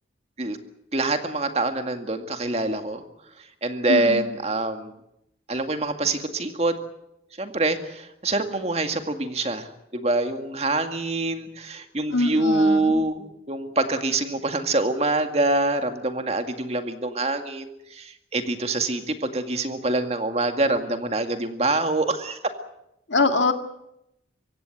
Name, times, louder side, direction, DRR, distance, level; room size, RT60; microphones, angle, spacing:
voice 1, 0.9-3.0 3.6-5.0 5.5-6.8 7.4-22.4, right 2 dB, 35° right, 6 dB, 2.1 m, -25 dB
voice 2, 3.9-4.2 12.1-13.0 23.1-23.5, left 3 dB, 85° left, 7 dB, 1.9 m, -23 dB
24.5 x 16.5 x 9.2 m, 0.83 s
head